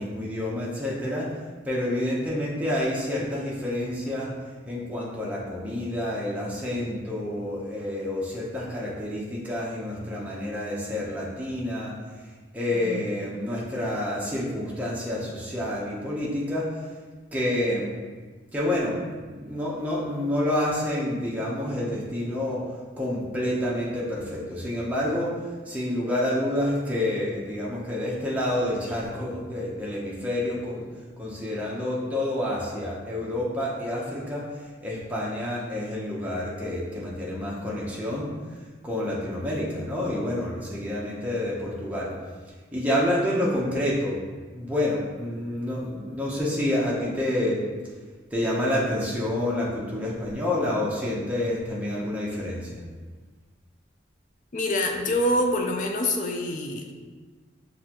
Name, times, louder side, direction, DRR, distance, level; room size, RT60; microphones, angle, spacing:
voice 1, 0.0-1.3 1.6-4.3 4.7-11.9 12.5-16.7 17.3-17.9 18.5-30.9 31.2-38.3 38.8-42.1 42.7-44.2 44.5-47.6 48.3-52.8, left 1 dB, 5° right, -5 dB, 0.7 m, -28 dB
voice 2, 12.7-13.0 54.5-56.9, left 1 dB, 40° left, 2 dB, 0.4 m, -26 dB
6.3 x 2.6 x 2.9 m, 1.4 s
head